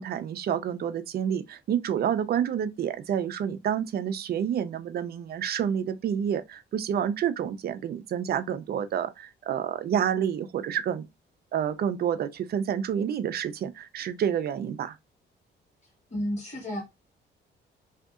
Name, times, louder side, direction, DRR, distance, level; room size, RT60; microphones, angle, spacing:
voice 1, 0.0-11.0 11.5-15.0, right 9 dB, 50° right, 0.4 m, -29 dB
voice 2, 16.1-16.8, equal, 35° left, 1.5 m, -31 dB
2.7 x 2.5 x 2.4 m
cardioid pair, 90°, 20 cm